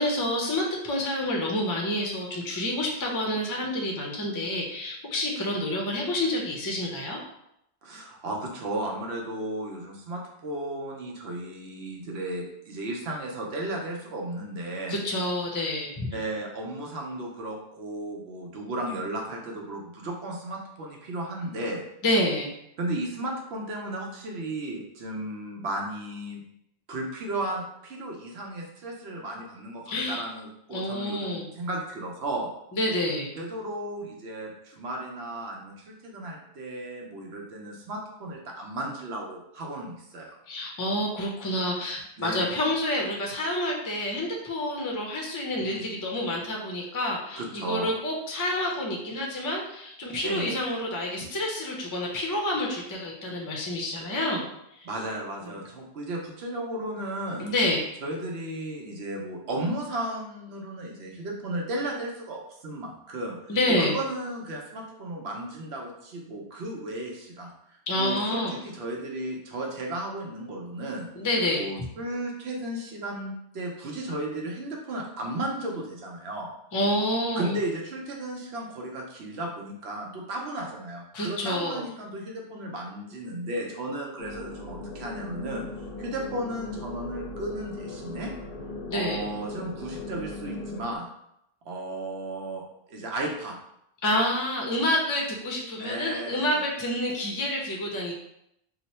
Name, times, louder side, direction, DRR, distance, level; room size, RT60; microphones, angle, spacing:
voice 1, 0.0-7.2 14.9-16.1 22.0-22.5 29.9-30.3 30.7-31.5 32.7-33.3 40.5-54.4 55.4-55.5 57.4-57.8 63.5-64.0 67.9-68.5 71.2-71.7 76.7-77.5 81.1-81.8 88.9-89.2 94.0-98.1, left 1 dB, 25° left, -1 dB, 0.4 m, -28 dB
voice 2, 7.8-15.0 16.1-21.8 22.8-26.4 26.9-32.5 33.4-40.4 42.2-42.5 45.6-45.8 47.3-47.9 50.2-50.6 54.8-57.5 58.0-71.1 71.5-76.5 77.4-88.3 88.9-91.1 91.6-92.6 92.9-93.6 95.8-96.6, right 1 dB, 85° right, 0 dB, 1.0 m, -34 dB
sound 1, 84.2-91.0, left 2 dB, 65° left, 0.8 m, -38 dB
2.9 x 2.1 x 4.1 m, 0.79 s
omnidirectional pair, 1.1 m